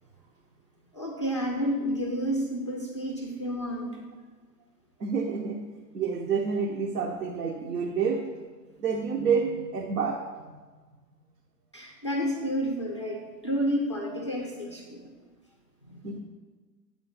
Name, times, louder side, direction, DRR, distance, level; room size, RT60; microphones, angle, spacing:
voice 1, 0.9-4.0 11.7-15.1 15.8-16.1, equal, 20° left, 1 dB, 0.3 m, -30 dB
voice 2, 5.0-5.6 5.9-8.2 8.8-10.2 16.0-16.2, right 5 dB, 75° right, 0 dB, 0.8 m, -28 dB
7.4 x 3.8 x 5.0 m, 1.4 s
figure-of-eight pair, 100°, 49 cm